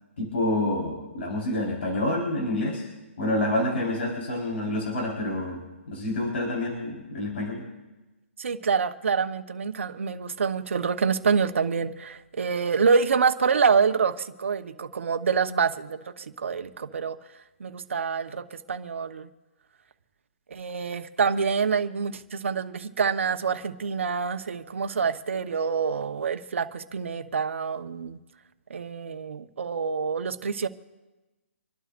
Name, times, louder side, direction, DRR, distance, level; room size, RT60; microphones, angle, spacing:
voice 1, 0.2-2.8 3.2-5.6 5.9-7.6, left 1 dB, 65° left, -2 dB, 4.5 m, -28 dB
voice 2, 8.4-17.2 17.6-19.3 20.5-28.2 28.7-30.7, right 5 dB, 75° right, 6 dB, 1.2 m, -26 dB
27.5 x 12.0 x 2.6 m, 1.1 s
hypercardioid pair, 155°, 7 cm